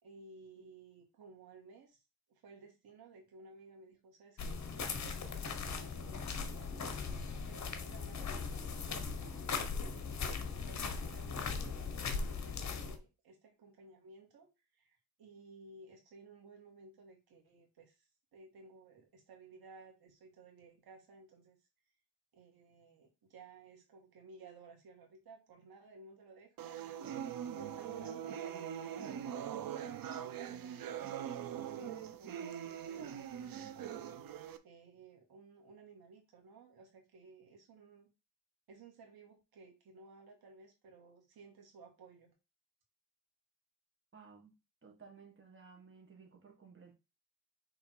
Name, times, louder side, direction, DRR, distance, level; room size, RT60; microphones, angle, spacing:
voice 1, 0.0-2.0 2.3-7.0 7.5-9.3 9.8-21.6 22.3-38.1 38.7-42.3, right 3 dB, 85° right, 2.1 m, -57 dB
sound 1, 4.4-13.0, left 5 dB, 50° left, 1.2 m, -39 dB
sound 2, 26.6-34.6, right 9 dB, 70° right, 0.7 m, -42 dB
voice 2, 44.1-44.5 44.8-46.9, right 5 dB, 35° right, 1.9 m, -57 dB
5.8 x 3.7 x 4.7 m
cardioid pair, 115°, 36 cm